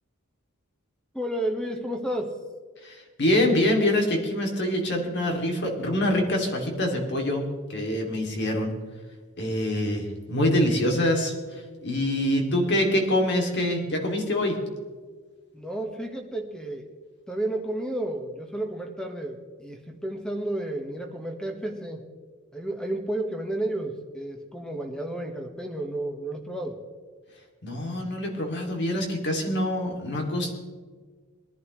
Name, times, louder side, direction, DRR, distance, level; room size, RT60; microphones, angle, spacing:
voice 1, 1.1-2.3 15.5-16.9 17.3-22.0 22.5-26.8, right 1 dB, 5° left, 4 dB, 1.4 m, -32 dB
voice 2, 2.8-8.7 9.4-14.6 27.6-30.5, left 1 dB, 55° left, 1 dB, 2.8 m, -25 dB
22.0 x 11.0 x 3.2 m, 1.5 s
head